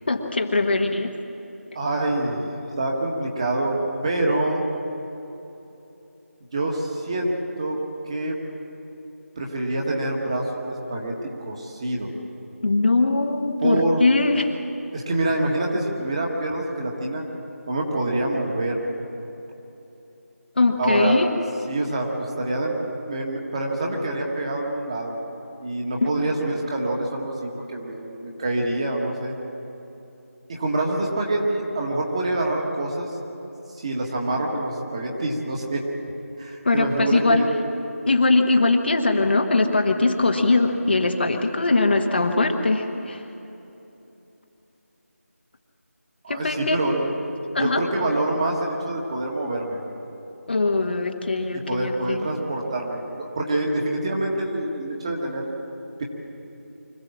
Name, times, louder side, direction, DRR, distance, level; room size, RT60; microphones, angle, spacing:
voice 1, 0.1-1.1 12.6-14.6 20.6-21.3 36.6-37.4 38.1-43.2 46.3-46.8 47.5-47.8 50.5-52.3, left 3 dB, 40° left, 4 dB, 1.3 m, -21 dB
voice 2, 1.8-2.5 2.8-3.8 4.0-4.6 6.5-7.8 8.1-8.4 9.4-12.1 13.6-14.0 14.9-17.2 17.7-18.8 20.8-21.2 21.7-22.8 23.1-25.1 25.6-29.3 30.5-33.1 33.8-35.8 36.4-37.5 46.2-47.1 47.5-49.8 51.7-55.5, right 2 dB, 25° right, -1 dB, 1.9 m, -26 dB
25.0 x 15.0 x 7.4 m, 3.0 s
figure-of-eight pair, 170°, 8 cm